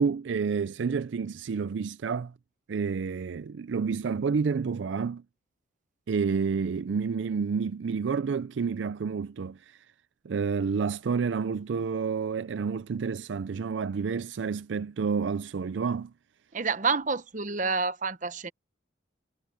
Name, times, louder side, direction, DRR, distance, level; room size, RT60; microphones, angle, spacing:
voice 1, 0.0-2.3 2.7-5.2 6.1-9.8 10.2-16.1, right 5 dB, 70° right, 0.4 m, -29 dB
voice 2, 16.5-18.5, right 4 dB, 40° right, 0.9 m, -28 dB
head